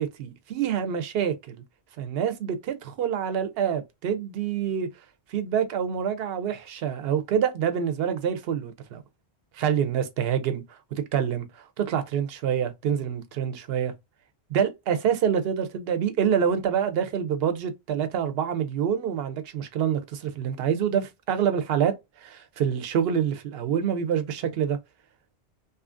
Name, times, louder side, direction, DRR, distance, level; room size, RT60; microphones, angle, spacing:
voice 1, 0.0-1.6 2.0-4.9 5.3-9.0 9.5-11.5 11.8-13.9 14.5-24.8, right 8 dB, 70° right, 0.8 m, -26 dB
2.7 x 2.4 x 2.4 m
omnidirectional pair, 1.1 m